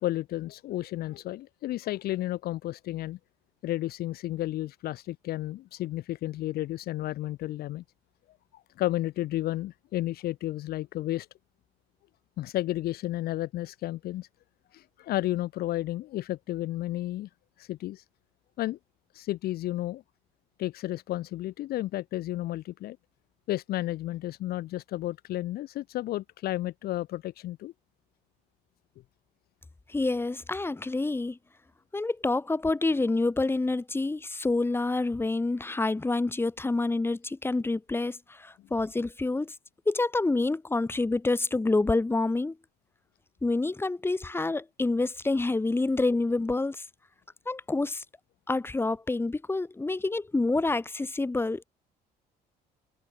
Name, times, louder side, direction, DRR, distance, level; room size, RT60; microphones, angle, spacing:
voice 1, 0.0-3.2 3.6-7.8 8.5-11.3 12.4-14.3 14.7-17.3 17.6-18.0 18.6-18.8 19.1-20.0 20.6-23.0 23.5-27.7, left 15 dB, 65° left, 0.6 m, -32 dB
voice 2, 29.9-31.4 31.9-39.5 39.9-42.6 43.4-46.8 47.5-48.0 48.5-51.6, left 2 dB, 15° left, 1.8 m, -27 dB
cardioid pair, 110°, 17 cm